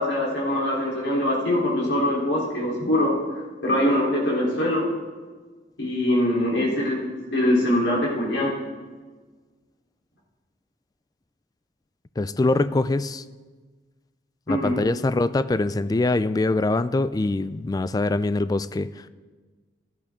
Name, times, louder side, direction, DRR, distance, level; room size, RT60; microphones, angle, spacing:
voice 1, 0.0-3.1 3.6-4.9 5.8-8.5 14.5-14.7, left 1 dB, 75° left, -4 dB, 3.6 m, -23 dB
voice 2, 12.2-13.2 14.5-19.1, left 2 dB, 20° left, 15 dB, 0.3 m, -23 dB
15.5 x 11.0 x 3.7 m, 1.4 s
head